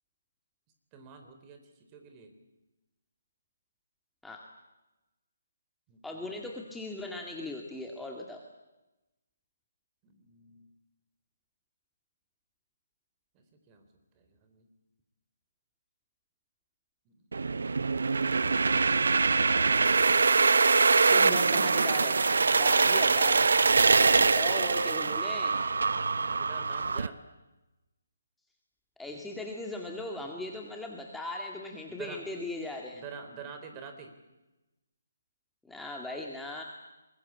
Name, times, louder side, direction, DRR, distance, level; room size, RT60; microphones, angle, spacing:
voice 1, 0.9-2.3 5.9-6.3 6.6-6.8 10.0-10.7 13.3-13.9 14.2-14.7 17.1-17.3 26.2-27.2 31.9-32.2 32.9-34.1, right 5 dB, 25° right, 7 dB, 3.9 m, -47 dB
voice 2, 6.0-8.4 21.1-22.2 22.5-23.5 24.0-25.6 29.0-33.0 35.6-36.6, left 2 dB, 5° left, 0 dB, 2.2 m, -39 dB
sound 1, 17.3-27.1, right 4 dB, 70° right, 0.9 m, -24 dB
24.0 x 21.5 x 8.7 m, 1.0 s
figure-of-eight pair, 145°, 0 cm